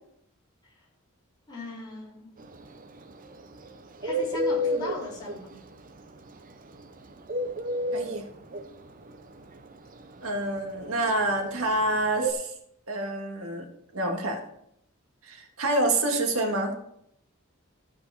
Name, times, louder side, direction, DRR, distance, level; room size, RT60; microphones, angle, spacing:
voice 1, 1.5-2.3 4.0-5.6, left 2 dB, 20° left, -7 dB, 4.3 m, -37 dB
Bird, 2.4-12.3, equal, 40° right, 0.8 m, -30 dB
voice 2, 7.9-8.3 10.2-12.5 12.9-13.7 13.9-14.4 15.2-16.7, right 2 dB, 80° right, 3 dB, 1.8 m, -27 dB
14.0 x 5.1 x 5.6 m, 0.76 s
head